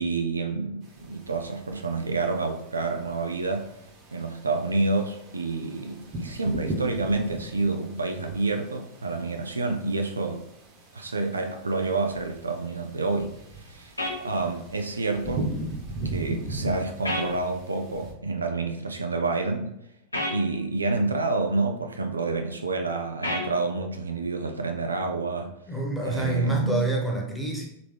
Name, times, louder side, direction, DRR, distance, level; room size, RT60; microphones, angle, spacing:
voice 1, 0.0-3.7 4.1-10.4 10.9-15.5 16.0-19.7 20.3-25.5 26.0-26.8, right 3 dB, 75° right, 4 dB, 0.4 m, -28 dB
sound 1, 0.8-18.1, right 1 dB, 35° right, 1.1 m, -39 dB
sound 2, 14.0-14.2 17.0-17.3 20.1-20.4 23.2-23.5, left 1 dB, 85° left, 0.9 m, -28 dB
voice 2, 25.7-27.7, right 2 dB, 5° right, -1 dB, 1.1 m, -27 dB
3.8 x 3.4 x 3.3 m, 0.80 s
figure-of-eight pair, 90°, 0 cm